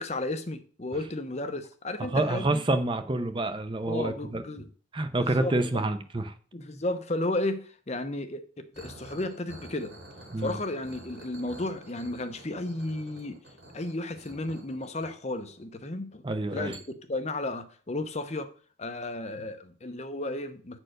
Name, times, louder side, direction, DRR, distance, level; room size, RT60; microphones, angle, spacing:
voice 1, 0.0-2.6 3.9-4.7 5.4-5.8 6.5-9.9 10.4-13.4 13.7-16.3 16.5-16.7 17.1-18.5 18.8-20.8, left 2 dB, 35° left, 9 dB, 0.8 m, -33 dB
voice 2, 2.1-4.4 4.9-6.3 10.3-10.5 16.2-16.7, right 2 dB, 25° right, 9 dB, 0.6 m, -28 dB
sound 1, 8.7-15.8 16.7-16.8, right 1 dB, 50° right, 3.2 m, -49 dB
8.8 x 4.5 x 6.4 m, 0.42 s
head